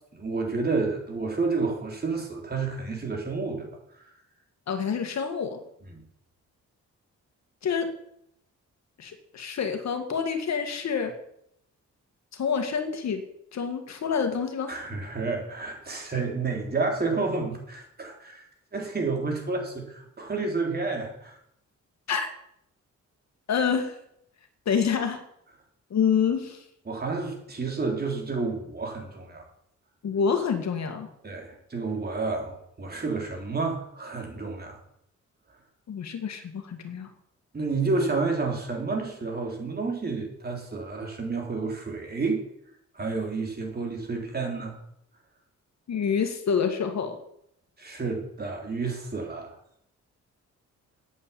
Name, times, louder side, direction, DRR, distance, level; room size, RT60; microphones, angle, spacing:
voice 1, 0.1-3.7 5.9-6.0 14.7-18.5 18.7-21.4 26.9-29.4 31.2-34.8 37.5-42.4 42.9-44.8 47.8-49.5, right 3 dB, 30° right, 1 dB, 3.9 m, -30 dB
voice 2, 4.7-5.6 7.6-7.9 9.0-11.1 12.3-13.2 13.5-14.7 22.1-22.3 23.5-24.0 24.7-25.2 25.9-26.6 30.0-31.1 35.9-37.1 45.9-47.2, left 6 dB, 65° left, 7 dB, 2.0 m, -27 dB
9.4 x 8.7 x 8.7 m, 0.74 s
cardioid pair, 120°, 30 cm